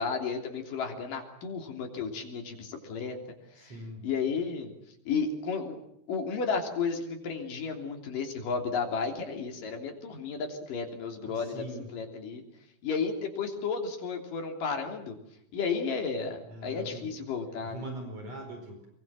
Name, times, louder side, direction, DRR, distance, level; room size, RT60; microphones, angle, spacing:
voice 1, 0.0-3.7 4.0-4.7 5.0-5.8 6.1-12.4 12.8-15.2 15.5-17.9, left 5 dB, 80° left, 3 dB, 4.9 m, -33 dB
voice 2, 3.6-4.1 11.3-11.9 16.5-17.1 17.6-18.9, right 1 dB, 50° right, 4 dB, 5.9 m, -41 dB
25.5 x 23.0 x 7.6 m, 0.76 s
omnidirectional pair, 3.8 m